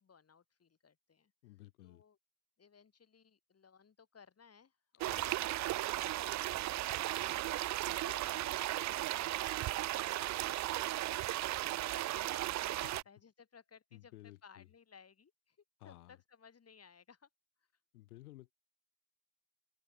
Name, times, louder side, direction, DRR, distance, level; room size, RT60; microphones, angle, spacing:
voice 1, 0.0-1.3 1.8-2.2 2.6-10.6 10.9-14.1 14.4-15.6 15.8-17.3, left 6 dB, 35° left, 7.1 m, -61 dB
voice 2, 1.4-2.0 5.0-5.4 7.1-7.4 10.3-10.4 13.9-14.7 15.8-16.2 17.9-18.5, left 17 dB, 80° left, 6.4 m, -55 dB
sound 1, 5.0-13.0, right 15 dB, 40° right, 0.6 m, -36 dB
open air
hypercardioid pair, 60°, 44 cm